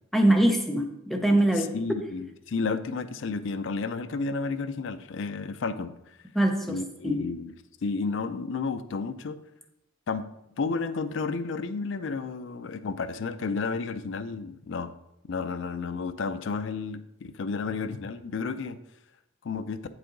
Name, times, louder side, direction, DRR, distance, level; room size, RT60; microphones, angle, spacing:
voice 1, 0.1-1.8 6.3-6.8 7.0-7.2, right 1 dB, ahead, 3 dB, 0.5 m, -23 dB
voice 2, 1.6-6.0 6.7-7.5 7.8-9.4 10.1-10.2 10.6-14.9 15.3-18.8 19.4-19.8, left 4 dB, 60° left, 11 dB, 0.4 m, -32 dB
8.2 x 4.8 x 3.8 m, 0.86 s
head